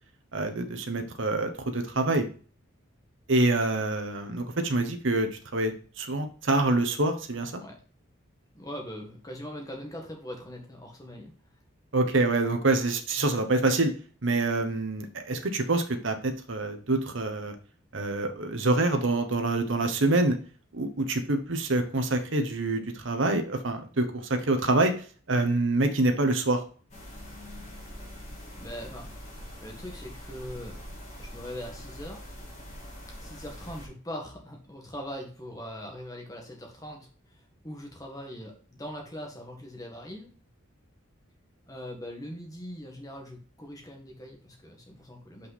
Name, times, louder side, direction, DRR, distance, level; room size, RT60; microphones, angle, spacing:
voice 1, 0.3-2.3 3.3-7.6 11.9-13.9 14.2-17.5 17.9-20.4 20.7-26.6, right 2 dB, 65° right, 6 dB, 1.1 m, -26 dB
voice 2, 8.5-11.3 28.5-29.1 29.5-30.8 31.2-32.2 33.1-40.3 41.7-45.5, equal, 20° left, 1 dB, 1.7 m, -41 dB
sound 1, 26.9-33.9, equal, 35° left, 2.5 m, -43 dB
5.5 x 5.4 x 4.1 m, 0.40 s
head